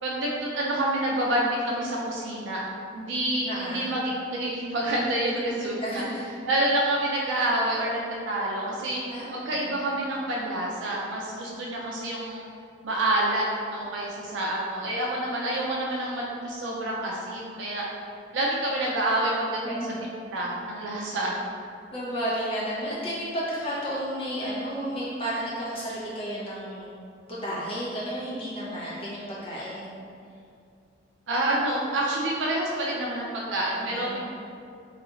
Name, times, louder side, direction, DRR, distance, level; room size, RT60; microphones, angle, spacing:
voice 1, 0.0-6.0 6.5-9.0 9.3-12.4 12.8-17.8 18.3-21.4 31.3-34.2, right 1 dB, 75° right, -4 dB, 0.4 m, -28 dB
voice 2, 3.4-3.9 5.8-6.2 9.1-9.8 19.6-19.9 21.9-26.9 27.3-30.0 33.7-34.2, equal, 30° left, -8 dB, 0.9 m, -32 dB
3.9 x 2.4 x 3.1 m, 2.4 s
head